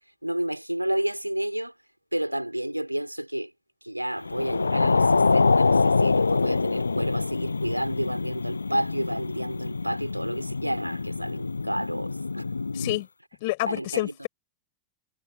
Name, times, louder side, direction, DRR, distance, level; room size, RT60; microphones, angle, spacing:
voice 1, 0.2-1.7 2.1-3.5 3.8-12.5 13.6-14.1, right 1 dB, 90° right, 4.0 m, -30 dB
sound 1, 4.3-13.0, left 4 dB, 80° left, 0.7 m, -25 dB
voice 2, 12.7-13.1 13.4-14.3, left 22 dB, 50° left, 5.8 m, -28 dB
figure-of-eight pair, 90°, 0 cm